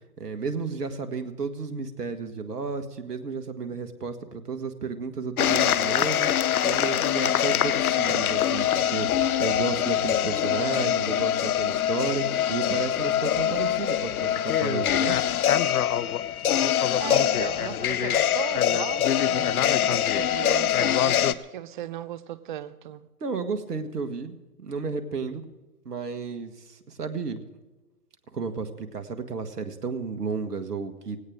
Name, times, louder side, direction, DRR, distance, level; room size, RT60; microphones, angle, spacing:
voice 1, 0.2-6.3 6.6-15.2 23.2-25.4 25.9-27.4 28.3-31.2, right 4 dB, 85° right, 1.8 m, -32 dB
sound 1, 5.4-21.3, left 10 dB, 70° left, 0.8 m, -24 dB
voice 2, 17.0-23.1, right 12 dB, 35° right, 0.6 m, -37 dB
18.5 x 17.0 x 3.7 m
hypercardioid pair, 135°, 46 cm